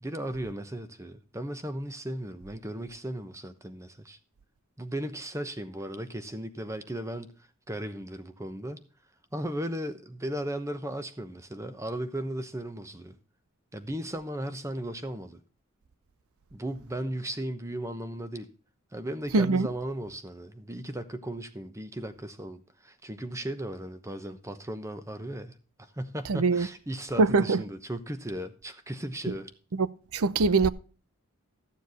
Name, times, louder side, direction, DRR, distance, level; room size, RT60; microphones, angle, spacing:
voice 1, 0.0-4.2 4.8-7.3 7.7-8.8 9.3-13.2 13.7-15.4 16.5-18.5 18.9-29.5, right 1 dB, 15° right, 1.0 m, -36 dB
voice 2, 19.3-19.7 26.3-26.7 27.2-27.6 29.7-29.9 30.1-30.7, right 4 dB, 85° right, 0.6 m, -22 dB
13.5 x 7.3 x 4.1 m
head